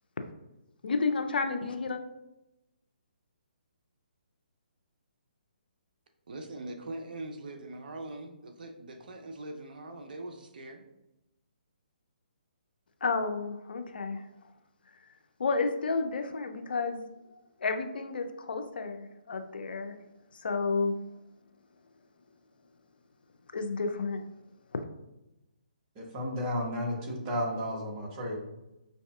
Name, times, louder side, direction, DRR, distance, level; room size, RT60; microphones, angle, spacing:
voice 1, 0.8-2.0 13.0-14.2 15.4-17.0 17.6-19.9 20.4-21.0 23.5-24.2 24.7-24.8, left 4 dB, 70° left, 7 dB, 0.5 m, -31 dB
voice 2, 6.3-10.8, right 2 dB, 60° right, 5 dB, 0.6 m, -42 dB
voice 3, 25.9-28.4, left 1 dB, 25° right, -2 dB, 1.0 m, -33 dB
5.4 x 2.7 x 2.3 m, 0.94 s
hypercardioid pair, 145°, 5 cm